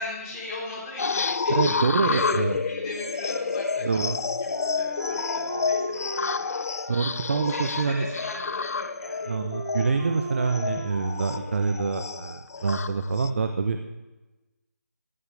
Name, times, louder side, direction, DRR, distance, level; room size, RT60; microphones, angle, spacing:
voice 1, 0.0-4.2 4.4-6.6 7.4-9.3 12.5-12.7, left 2 dB, 20° left, -7 dB, 4.1 m, -39 dB
sound 1, 1.0-13.3, left 5 dB, 60° left, 0.6 m, -29 dB
voice 2, 1.5-2.6 3.8-4.2 6.9-8.1 9.3-13.8, right 4 dB, 45° right, 7 dB, 0.8 m, -26 dB
Wind instrument woodwind instrument, 4.5-12.1, right 1 dB, 70° right, 5.1 m, -39 dB
15.5 x 15.0 x 3.5 m, 1.1 s
figure-of-eight pair, 165°, 9 cm